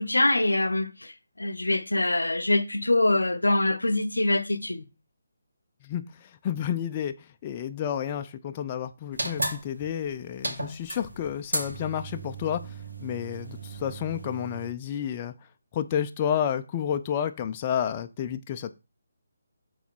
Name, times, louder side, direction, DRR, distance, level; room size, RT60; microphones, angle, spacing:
voice 1, 0.0-4.8, left 2 dB, 85° left, 0.7 m, -24 dB
voice 2, 5.8-12.7 13.0-15.3 15.7-18.7, left 9 dB, 30° left, 0.4 m, -30 dB
sound 1, 9.1-14.7, right 2 dB, 75° right, 2.1 m, -35 dB
7.0 x 4.1 x 4.5 m
figure-of-eight pair, 150°, 0 cm